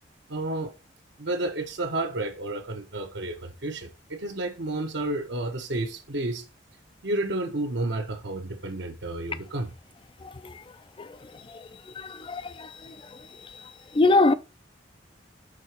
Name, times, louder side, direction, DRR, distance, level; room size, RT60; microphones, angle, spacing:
voice 1, 0.3-0.7 1.2-6.5 7.0-9.7, right 2 dB, 65° right, 0.9 m, -31 dB
voice 2, 12.0-12.7 14.0-14.3, left 2 dB, 25° left, 0.4 m, -21 dB
6.3 x 3.9 x 4.4 m
head